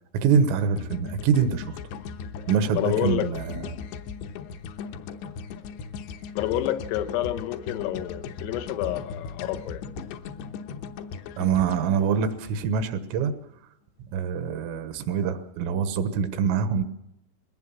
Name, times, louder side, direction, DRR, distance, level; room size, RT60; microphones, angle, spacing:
voice 1, 0.1-1.8 2.5-3.8 11.4-13.3 14.1-16.8, right 6 dB, 85° right, 9 dB, 3.9 m, -25 dB
sound 1, 0.8-13.0, left 6 dB, 75° left, 2.9 m, -38 dB
voice 2, 2.7-3.3 6.4-9.8, left 13 dB, 90° left, 8 dB, 3.9 m, -28 dB
21.0 x 18.5 x 7.5 m, 0.82 s
omnidirectional pair, 5.8 m